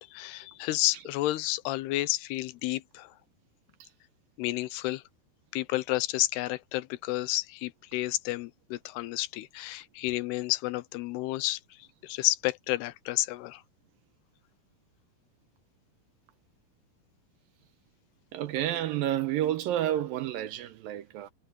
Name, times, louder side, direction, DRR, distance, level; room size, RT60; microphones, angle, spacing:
voice 1, 0.0-3.1 4.4-5.0 5.5-11.6 12.0-13.6, left 18 dB, 85° left, 2.8 m, -31 dB
voice 2, 18.3-21.3, right 12 dB, 75° right, 2.3 m, -30 dB
omnidirectional pair, 4.6 m